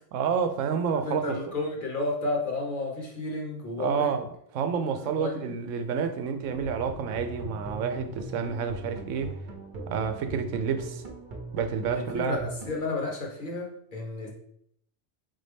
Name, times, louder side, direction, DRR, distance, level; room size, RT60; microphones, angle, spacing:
voice 1, 0.1-1.4 3.8-4.2 4.5-9.3 9.9-11.0 11.5-12.4, right 6 dB, 80° right, 0.9 m, -29 dB
voice 2, 1.0-4.1 4.9-5.5 11.9-14.3, left 2 dB, 45° left, 1.1 m, -32 dB
sound 1, 6.4-12.8, right 2 dB, 45° right, 0.9 m, -40 dB
4.0 x 3.9 x 3.3 m
omnidirectional pair, 1.3 m